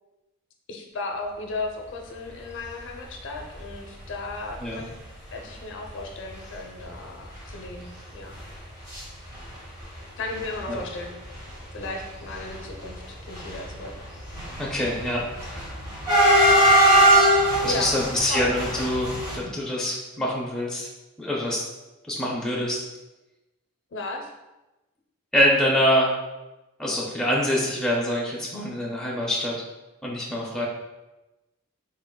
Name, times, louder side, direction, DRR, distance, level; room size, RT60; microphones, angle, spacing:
voice 1, 0.7-4.9 5.3-8.4 10.2-11.2 11.7-13.9 17.7-18.6 23.9-24.3, left 2 dB, 60° left, 2 dB, 0.5 m, -35 dB
sound 1, 3.4-3.6 4.1-4.2 4.4-4.5 5.3-5.4 5.8-6.0 6.3-6.4 6.8-9.0 9.3-10.0 10.3-19.4, right 1 dB, 20° right, 1.1 m, -22 dB
voice 2, 14.6-15.2 15.5-15.7 17.6-20.9 21.2-21.6 22.1-22.8 25.3-26.1 26.8-29.5 30.0-30.7, left 1 dB, 5° left, -4 dB, 0.4 m, -25 dB
3.7 x 3.6 x 2.2 m, 1.1 s
head